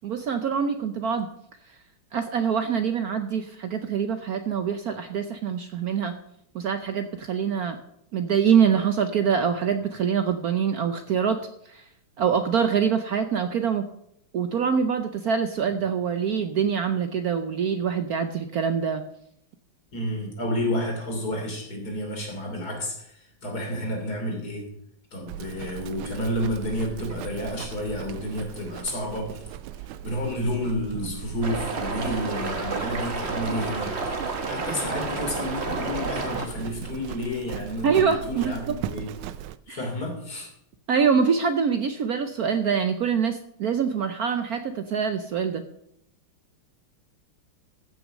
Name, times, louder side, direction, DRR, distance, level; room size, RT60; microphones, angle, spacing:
voice 1, 0.0-1.3 1.7-1.8 2.1-6.1 6.5-7.8 8.1-11.9 12.2-13.9 14.3-19.1 37.8-38.8 39.7-39.8 40.9-45.6, right 7 dB, 65° right, 9 dB, 0.9 m, -25 dB
voice 2, 19.9-24.7 25.1-29.5 30.0-39.1 39.7-40.5, left 1 dB, 45° left, 1 dB, 3.5 m, -30 dB
Livestock farm animals working animals, 25.3-39.6, right 11 dB, 80° right, 1.4 m, -38 dB
sound 1, 31.4-36.5, right 4 dB, 35° right, 1.3 m, -30 dB
14.5 x 6.2 x 6.4 m, 0.75 s
omnidirectional pair, 2.3 m